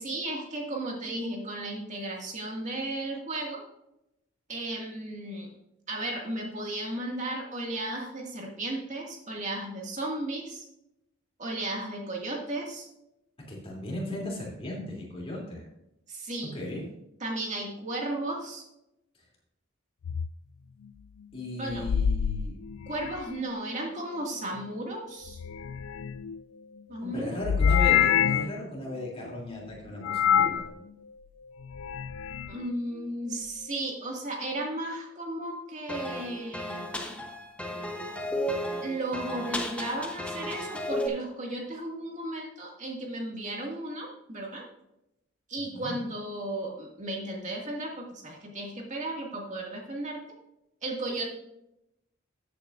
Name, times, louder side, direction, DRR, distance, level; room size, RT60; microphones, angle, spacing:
voice 1, 0.0-3.6 4.5-5.5 5.9-10.6 11.4-12.9 16.1-16.5 17.2-18.6 21.6-21.9 22.9-25.4 26.9-27.4 32.5-36.8 38.8-44.6 45.5-50.2 50.8-51.2, right 1 dB, 35° right, -1 dB, 2.1 m, -34 dB
voice 2, 13.5-15.6 16.5-16.9 21.3-22.6 27.0-30.6 45.7-45.9, left 1 dB, 30° left, -3 dB, 3.0 m, -36 dB
sound 1, 20.0-20.3 21.7-23.4 25.3-26.4 27.4-28.6 30.0-30.7 31.6-32.5, left 8 dB, 85° left, 0.4 m, -26 dB
sound 2, 35.9-41.1, equal, 5° left, 0.9 m, -34 dB
13.5 x 8.5 x 2.6 m, 0.84 s
head